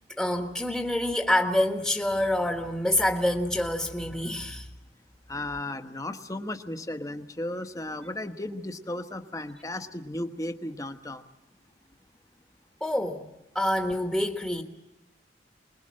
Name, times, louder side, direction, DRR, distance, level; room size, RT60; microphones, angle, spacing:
voice 1, 0.2-4.7 12.8-13.3 13.5-14.6, left 1 dB, ahead, 1.4 m, -26 dB
voice 2, 5.3-11.3, left 1 dB, 20° left, 1.1 m, -35 dB
24.5 x 21.0 x 7.6 m
head